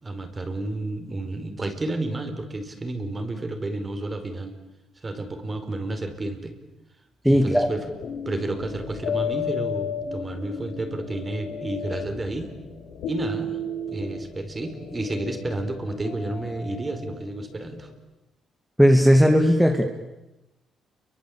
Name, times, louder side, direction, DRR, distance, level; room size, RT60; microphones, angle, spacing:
voice 1, 0.0-4.5 5.0-6.5 7.2-7.9 8.2-12.5 13.0-13.6 13.9-17.9, right 2 dB, 25° right, 7 dB, 4.8 m, -31 dB
voice 2, 7.2-7.7 18.8-19.9, equal, ahead, 2 dB, 2.6 m, -16 dB
sound 1, 7.3-17.7, left 4 dB, 90° left, 7.0 m, -34 dB
29.0 x 24.0 x 8.7 m, 0.98 s
cardioid pair, 90°, 0 cm